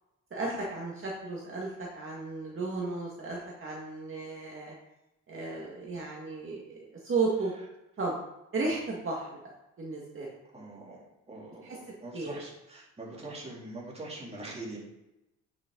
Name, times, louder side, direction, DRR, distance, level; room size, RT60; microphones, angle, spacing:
voice 1, 0.3-4.7 5.3-7.5 8.0-8.1 8.5-9.5 9.8-10.3 11.6-12.3, right 3 dB, 45° right, -3 dB, 1.9 m, -34 dB
voice 2, 10.5-11.0 11.3-14.8, right 2 dB, 20° right, -3 dB, 3.0 m, -43 dB
9.3 x 6.5 x 3.9 m, 0.92 s
cardioid pair, 90°, 30 cm